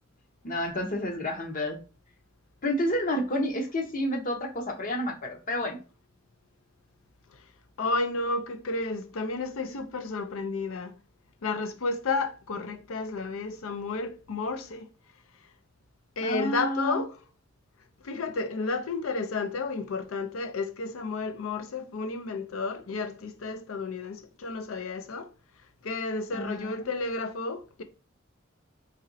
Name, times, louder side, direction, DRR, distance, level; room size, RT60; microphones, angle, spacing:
voice 1, 0.4-1.8 2.6-5.8 16.2-17.0 26.3-26.8, left 1 dB, 45° left, 0.8 m, -30 dB
voice 2, 7.8-10.9 11.4-14.9 16.2-17.2 18.0-25.3 25.8-27.8, left 3 dB, 85° left, 0.5 m, -32 dB
4.2 x 2.9 x 2.6 m
head